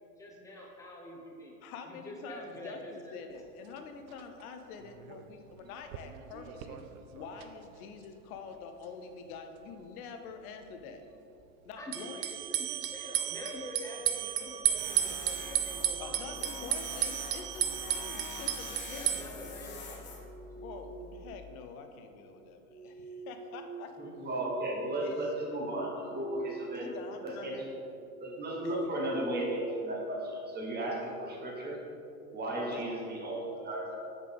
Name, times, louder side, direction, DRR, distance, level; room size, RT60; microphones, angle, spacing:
voice 1, 0.2-1.5 1.9-3.2 11.8-16.8 19.0-20.0, left 1 dB, 5° left, -3 dB, 1.1 m, -45 dB
voice 2, 1.6-6.8 7.1-11.0 11.6-12.2 16.0-19.3 20.5-23.9 25.0-25.3 26.7-27.7 28.6-28.8 32.7-32.9, left 5 dB, 65° left, 6 dB, 0.9 m, -46 dB
sound 1, 3.3-3.4 3.8-3.9 4.1-4.2 4.9-5.2 5.5-7.5 7.8-7.9 11.9-19.2, right 12 dB, 65° right, 0.6 m, -34 dB
Tools, 14.8-21.3, left 3 dB, 25° left, 0.9 m, -45 dB
sound 2, 19.9-21.4 22.4-24.5 25.0-26.8 27.1-27.4 27.9-30.2, right 4 dB, 50° right, 1.3 m, -47 dB
voice 3, 24.0-26.9 27.2-27.6 28.2-31.8 32.3-34.0, right 1 dB, 20° right, -1 dB, 1.2 m, -35 dB
6.6 x 5.2 x 3.6 m, 2.8 s
hypercardioid pair, 110°, 46 cm